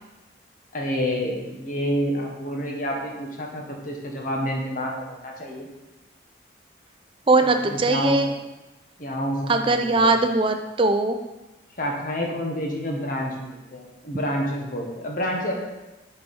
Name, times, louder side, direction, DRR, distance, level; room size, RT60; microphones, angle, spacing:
voice 1, 0.7-5.6 7.4-8.2 9.0-10.1 11.8-15.5, equal, 45° left, 0 dB, 1.2 m, -28 dB
voice 2, 7.3-8.3 9.5-11.2, right 2 dB, 25° right, 7 dB, 0.4 m, -20 dB
5.9 x 4.8 x 5.5 m, 1.0 s
head